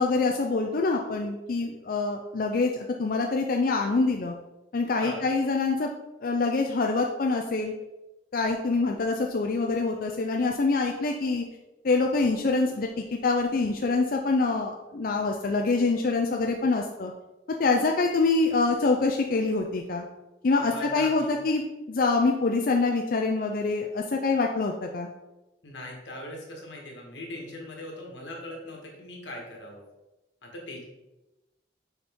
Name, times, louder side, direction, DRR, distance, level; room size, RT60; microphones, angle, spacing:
voice 1, 0.0-4.3 4.7-5.9 6.2-7.7 8.3-11.4 11.8-17.1 17.6-20.1 20.4-25.1, left 3 dB, 50° left, 2 dB, 0.4 m, -25 dB
voice 2, 4.9-5.3 20.5-21.3 25.6-29.8 30.4-30.8, left 1 dB, 90° left, 0 dB, 1.6 m, -40 dB
6.8 x 4.3 x 3.6 m, 1.0 s
head